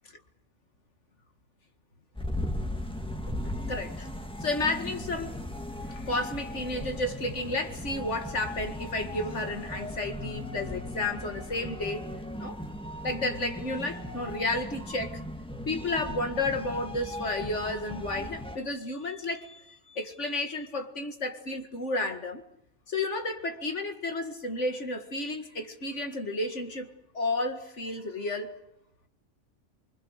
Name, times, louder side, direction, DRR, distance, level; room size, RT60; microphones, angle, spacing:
sound 1, 2.1-18.6, left 1 dB, 5° left, 1.9 m, -37 dB
voice 1, 3.7-4.1 4.4-5.3 5.9-12.1 12.4-12.6 13.0-15.2 15.7-22.4 22.9-28.6, left 2 dB, 70° left, 2.3 m, -32 dB
25.5 x 25.0 x 6.5 m
omnidirectional pair, 1.3 m